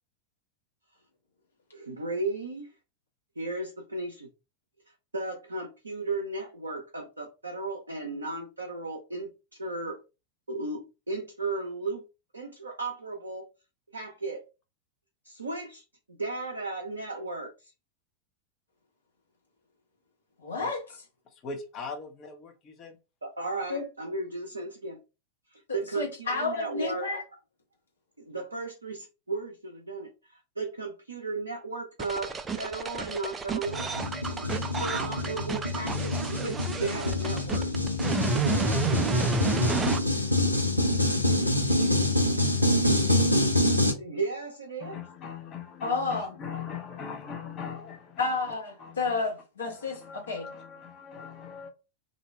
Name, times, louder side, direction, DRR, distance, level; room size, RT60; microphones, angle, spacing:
voice 1, 1.7-2.7 3.4-4.3 5.1-9.3 9.6-10.0 10.5-12.0 12.3-13.5 13.9-14.4 15.2-17.7 23.2-25.0 25.5-27.1 28.2-33.9 34.5-37.6 44.0-45.0, right 3 dB, 75° right, 0.5 m, -35 dB
voice 2, 20.4-21.0 23.7-23.8 25.9-27.2 45.8-46.4 48.2-50.5, left 3 dB, 70° left, 1.1 m, -31 dB
voice 3, 21.4-23.0 41.6-41.9 44.8-48.2 48.8-49.2 49.7-51.7, left 6 dB, 30° left, 0.7 m, -41 dB
sound 1, 32.0-40.0, right 4 dB, 15° right, 0.3 m, -30 dB
sound 2, 33.7-43.9, left 1 dB, 90° left, 0.4 m, -26 dB
2.6 x 2.1 x 3.3 m
figure-of-eight pair, 90°, 0 cm